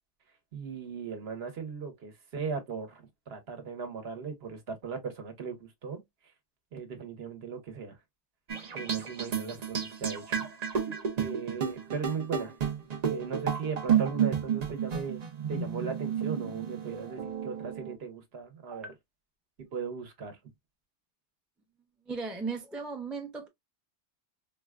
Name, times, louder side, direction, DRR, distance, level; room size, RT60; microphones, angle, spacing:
voice 1, 0.5-5.5 5.8-6.0 6.7-8.0 8.7-10.4 10.7-10.9 11.2-12.6 13.0-15.2 15.5-18.9 19.7-20.4, right 5 dB, 60° right, 1.1 m, -37 dB
sound 1, 8.5-18.0, right 8 dB, 45° right, 0.6 m, -31 dB
voice 2, 22.1-23.5, right 4 dB, ahead, 0.4 m, -36 dB
3.9 x 2.2 x 2.3 m
omnidirectional pair, 1.2 m